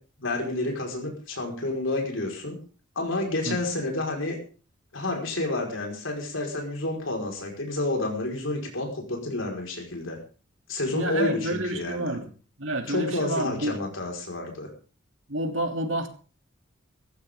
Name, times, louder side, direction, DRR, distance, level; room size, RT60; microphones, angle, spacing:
voice 1, 0.2-2.6 2.9-4.4 4.9-10.2 10.7-12.2 12.9-14.7, left 2 dB, 75° left, 1 dB, 5.1 m, -30 dB
voice 2, 10.9-12.3 12.6-13.8 15.3-16.1, right 1 dB, 75° right, 5 dB, 3.1 m, -29 dB
18.0 x 14.5 x 3.8 m, 0.36 s
head